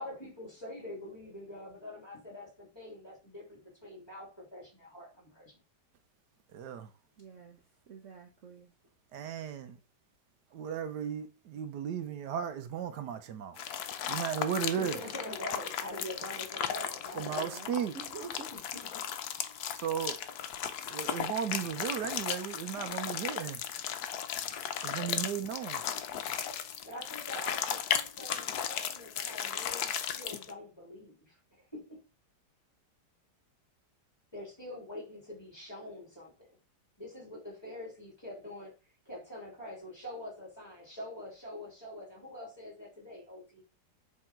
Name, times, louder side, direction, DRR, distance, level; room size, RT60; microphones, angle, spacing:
voice 1, 0.0-5.6 14.6-17.5 18.5-18.6 18.9-19.2 23.0-23.2 26.8-32.0 34.3-36.6 37.0-38.7 39.0-43.6, left 1 dB, 15° left, 3.3 m, -45 dB
voice 2, 6.5-6.9 9.1-9.8 10.5-13.7 14.1-15.0 17.1-18.0 19.7-20.2 20.9-23.6 24.8-25.8, right 8 dB, 80° right, 1.3 m, -35 dB
voice 3, 7.2-8.7 17.3-18.5, right 6 dB, 55° right, 1.1 m, -48 dB
sound 1, 13.6-30.5, left 9 dB, 70° left, 1.2 m, -36 dB
7.7 x 3.6 x 4.4 m
omnidirectional pair, 1.8 m